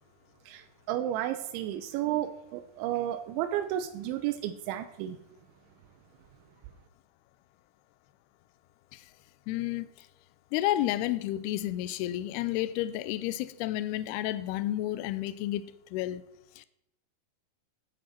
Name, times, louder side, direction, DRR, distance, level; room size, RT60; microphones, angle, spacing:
voice 1, 0.5-5.2, right 12 dB, 85° right, 3.0 m, -32 dB
voice 2, 9.5-9.9 10.5-15.7 15.9-16.2 16.6-16.7, left 14 dB, 85° left, 2.4 m, -31 dB
17.5 x 8.7 x 4.4 m
omnidirectional pair, 5.2 m